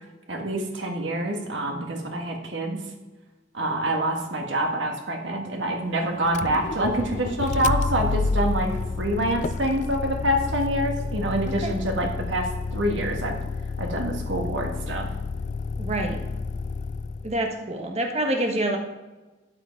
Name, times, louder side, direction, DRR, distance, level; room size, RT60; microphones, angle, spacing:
voice 1, 0.3-2.8 3.5-8.7 9.0-13.4 13.8-15.1, right 1 dB, 75° right, 2 dB, 1.8 m, -26 dB
Motor vehicle (road), 6.2-17.4, left 4 dB, 40° left, 0.3 m, -30 dB
voice 2, 15.8-16.2 17.2-18.8, right 1 dB, 35° right, 3 dB, 1.3 m, -27 dB
12.5 x 8.3 x 4.6 m, 1.2 s
head